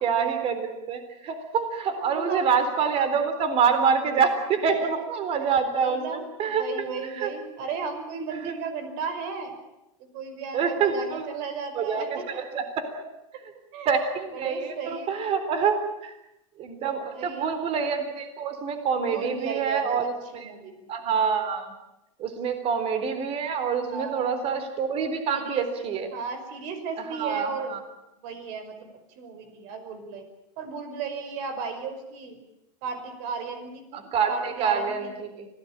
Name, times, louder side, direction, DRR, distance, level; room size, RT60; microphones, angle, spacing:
voice 1, 0.0-7.3 8.3-8.5 10.5-11.3 11.7-13.0 13.9-16.1 16.6-20.5 20.9-21.7 22.2-26.1 27.1-27.8 33.9-35.5, right 6 dB, 40° right, 9 dB, 3.8 m, -26 dB
voice 2, 1.9-2.5 5.7-9.5 10.1-12.4 13.7-13.9 14.3-15.3 17.1-17.5 19.1-20.9 23.9-24.5 25.3-25.7 26.1-27.8 28.2-30.3 30.6-32.4 32.8-34.0 34.3-35.1, right 5 dB, 55° right, 9 dB, 5.5 m, -35 dB
25.5 x 18.0 x 8.9 m, 0.91 s
supercardioid pair, 125°, 16 cm